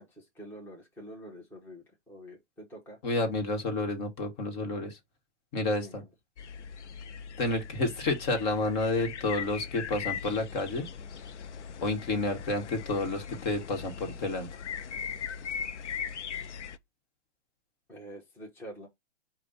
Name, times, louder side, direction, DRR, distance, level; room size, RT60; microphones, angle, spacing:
voice 1, 0.0-3.0 5.8-6.1 17.9-18.9, right 1 dB, 5° left, 1.0 m, -47 dB
voice 2, 3.0-5.0 5.5-6.0 7.4-10.8 11.8-14.5, left 2 dB, 40° left, 1.4 m, -30 dB
sound 1, 6.4-16.8, left 7 dB, 80° left, 0.6 m, -39 dB
5.1 x 2.4 x 4.1 m
hypercardioid pair, 145°, 35 cm